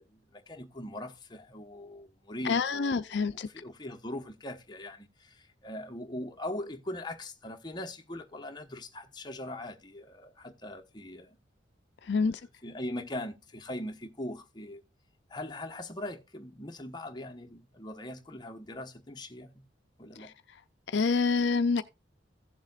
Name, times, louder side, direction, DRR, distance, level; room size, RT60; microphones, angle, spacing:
voice 1, 0.0-11.4 12.2-12.3 12.6-14.8 15.3-19.7 20.0-20.3, left 1 dB, 25° left, 1.1 m, -41 dB
voice 2, 2.4-3.5 12.0-12.4 20.2-20.3 20.9-21.8, left 4 dB, 65° left, 0.5 m, -27 dB
15.5 x 7.3 x 2.4 m
head